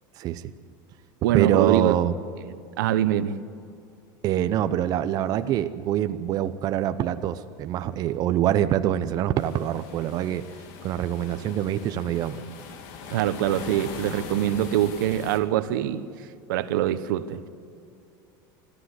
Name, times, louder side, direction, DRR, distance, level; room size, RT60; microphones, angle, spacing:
voice 1, 0.2-0.5 1.3-2.1 4.2-10.4 10.8-12.4, right 11 dB, 35° right, 0.8 m, -25 dB
voice 2, 1.2-2.0 2.8-3.4 13.1-16.1 16.5-17.5, right 12 dB, 85° right, 1.1 m, -24 dB
sound 1, 9.4-15.4, left 6 dB, 60° left, 2.5 m, -41 dB
22.0 x 14.0 x 9.7 m
supercardioid pair, 155°, 11 cm